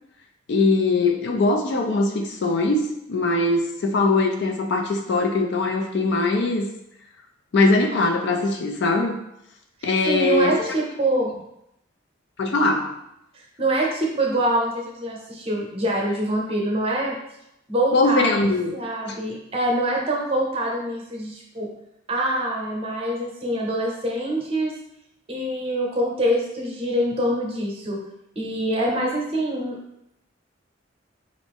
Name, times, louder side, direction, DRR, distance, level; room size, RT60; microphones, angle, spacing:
voice 1, 0.5-6.7 7.5-9.2 9.8-10.7 12.4-12.9 17.9-18.7 19.1-19.2, left 3 dB, 60° left, 3 dB, 0.4 m, -21 dB
voice 2, 10.0-11.3 13.3-17.2 17.7-18.4 18.7-21.7 22.1-24.7 25.3-28.0 28.4-29.8, right 1 dB, 30° right, -1 dB, 0.8 m, -25 dB
4.0 x 2.5 x 3.5 m, 0.81 s
head